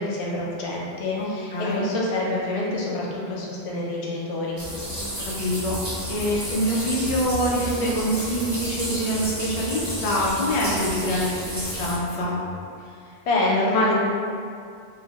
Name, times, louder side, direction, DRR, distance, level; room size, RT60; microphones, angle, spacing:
voice 1, 0.0-4.6 13.1-13.9, left 2 dB, 90° left, -4 dB, 0.9 m, -26 dB
voice 2, 1.2-1.8 4.9-5.1 5.4-5.8 6.1-12.4, equal, 50° left, -4 dB, 0.5 m, -25 dB
sound 1, 4.6-11.9, equal, 25° right, 0.8 m, -32 dB
sound 2, 6.9-12.6, equal, 80° right, 0.8 m, -40 dB
2.8 x 2.1 x 2.8 m, 2.3 s
omnidirectional pair, 1.1 m